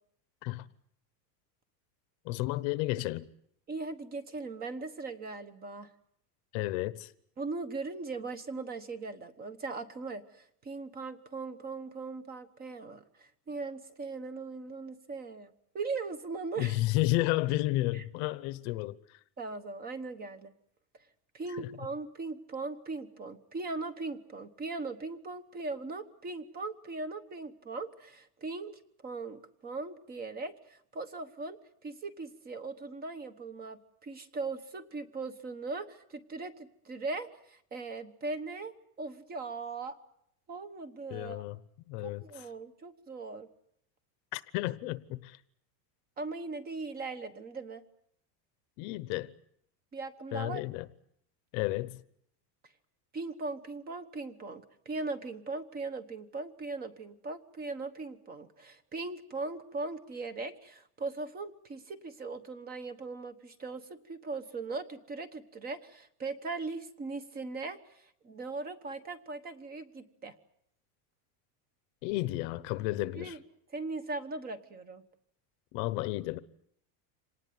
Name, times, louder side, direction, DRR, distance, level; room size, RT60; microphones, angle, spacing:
voice 1, 2.2-3.3 6.5-7.1 16.6-19.2 21.6-21.7 41.1-41.6 41.9-42.5 44.3-45.4 48.8-49.3 50.3-50.9 51.5-52.0 72.0-73.4 75.7-76.4, left 18 dB, 45° left, 0.9 m, -32 dB
voice 2, 3.7-5.9 7.4-16.8 17.9-18.0 19.4-20.5 21.3-40.0 40.5-41.4 42.0-43.5 46.2-47.8 49.9-50.6 53.1-70.3 73.2-73.4 73.7-75.0, right 3 dB, 20° right, 1.2 m, -39 dB
26.0 x 19.0 x 9.4 m
cardioid pair, 180°, 47 cm